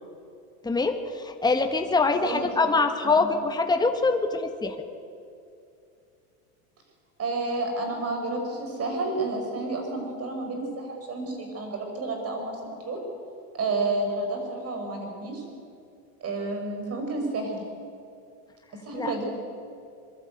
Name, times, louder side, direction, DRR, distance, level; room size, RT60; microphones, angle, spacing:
voice 1, 0.6-4.8 18.9-19.1, left 3 dB, 10° left, 6 dB, 1.4 m, -24 dB
voice 2, 2.1-2.7 3.0-3.3 7.2-13.0 13.5-15.4 16.2-17.6 18.8-19.2, right 2 dB, 30° right, 3 dB, 5.7 m, -30 dB
22.5 x 12.5 x 9.2 m, 2.4 s
supercardioid pair, 115°, 45 cm